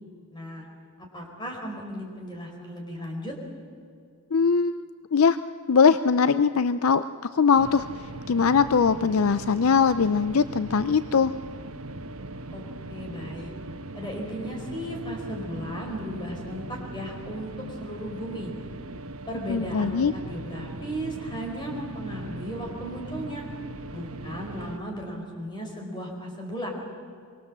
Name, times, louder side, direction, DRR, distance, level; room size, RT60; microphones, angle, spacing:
voice 1, 0.3-0.6 1.0-3.4 12.5-13.5 13.9-18.5 19.3-23.4 23.9-26.7, equal, 20° left, 1 dB, 4.7 m, -36 dB
voice 2, 4.3-4.8 5.1-5.4 5.7-7.0 7.3-11.3 19.5-20.1, left 5 dB, 75° left, 13 dB, 0.5 m, -21 dB
sound 1, 7.6-24.8, right 2 dB, 75° right, 1.1 m, -39 dB
24.5 x 24.0 x 7.6 m, 2.3 s
head